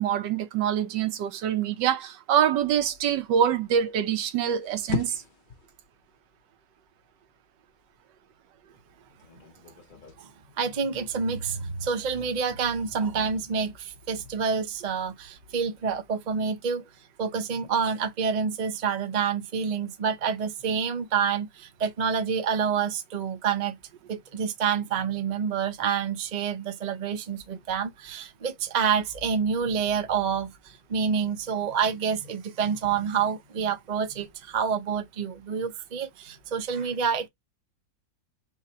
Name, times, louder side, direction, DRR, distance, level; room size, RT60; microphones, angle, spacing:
voice 1, 0.0-5.2, right 9 dB, 75° right, 1.4 m, -25 dB
sound 1, 2.6-10.2, left 6 dB, 45° left, 0.6 m, -40 dB
voice 2, 10.6-16.8 17.2-23.8 24.1-37.3, right 6 dB, 45° right, 0.5 m, -28 dB
3.8 x 2.8 x 4.2 m
omnidirectional pair, 1.9 m